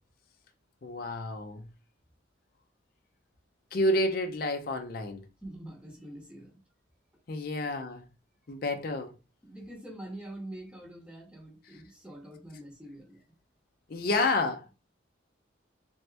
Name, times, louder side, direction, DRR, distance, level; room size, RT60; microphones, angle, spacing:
voice 1, 0.8-1.7 3.7-5.2 7.3-8.0 8.5-9.1 13.9-14.7, left 2 dB, 50° left, 0.5 m, -29 dB
voice 2, 5.4-6.6 7.6-7.8 9.4-13.2, right 1 dB, 5° right, 0.9 m, -45 dB
3.4 x 2.7 x 3.3 m
head